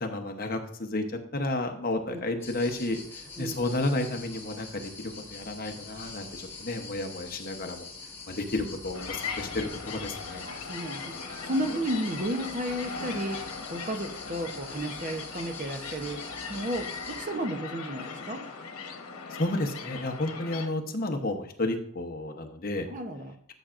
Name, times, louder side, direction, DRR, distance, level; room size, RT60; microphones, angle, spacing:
voice 1, 0.0-7.9 8.3-10.4 19.3-22.9, left 2 dB, 40° left, 5 dB, 1.0 m, -32 dB
sound 1, 2.4-17.2, left 3 dB, 10° left, 2.2 m, -44 dB
sound 2, 8.9-20.7, left 5 dB, 80° left, 1.2 m, -39 dB
voice 2, 10.5-11.1 11.4-16.2 16.5-18.4 22.9-23.3, right 1 dB, 35° right, 5 dB, 0.9 m, -33 dB
13.5 x 7.0 x 2.5 m, 0.64 s
head